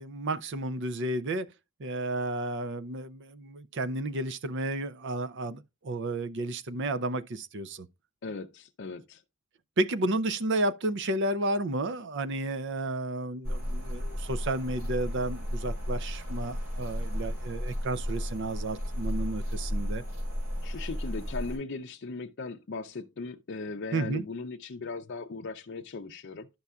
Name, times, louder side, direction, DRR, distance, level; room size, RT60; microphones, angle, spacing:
voice 1, 0.0-1.5 1.8-7.9 9.8-20.0 23.9-24.2, right 2 dB, 55° right, 0.6 m, -32 dB
voice 2, 8.2-9.2 20.6-26.5, left 3 dB, 50° left, 0.5 m, -38 dB
sound 1, 13.4-21.6, equal, 75° right, 3.7 m, -33 dB
12.0 x 5.5 x 2.3 m
head